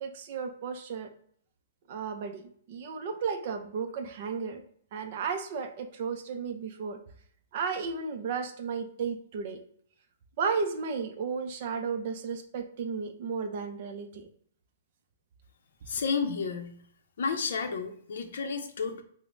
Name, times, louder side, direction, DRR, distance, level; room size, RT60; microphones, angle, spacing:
voice 1, 0.0-1.1 1.9-2.4 2.7-4.6 4.9-7.0 7.5-9.6 10.4-14.3, right 5 dB, 40° right, 6 dB, 0.4 m, -33 dB
voice 2, 15.9-16.8 17.2-19.0, left 5 dB, 65° left, 6 dB, 0.6 m, -31 dB
4.9 x 2.0 x 2.5 m, 0.62 s
hypercardioid pair, 175°, 0 cm